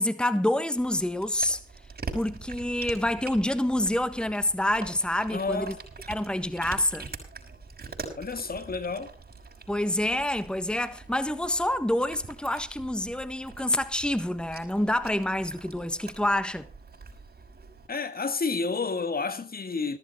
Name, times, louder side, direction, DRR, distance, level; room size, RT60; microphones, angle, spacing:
voice 1, 0.0-1.6 2.1-5.7 6.1-7.1 9.7-16.7, left 1 dB, 5° left, 1.4 m, -27 dB
Cat, 0.8-17.9, right 4 dB, 55° right, 5.9 m, -44 dB
voice 2, 5.3-5.8 8.2-9.1 17.9-20.0, left 4 dB, 50° left, 1.8 m, -30 dB
14.5 x 14.0 x 4.2 m
cardioid pair, 50°, 19 cm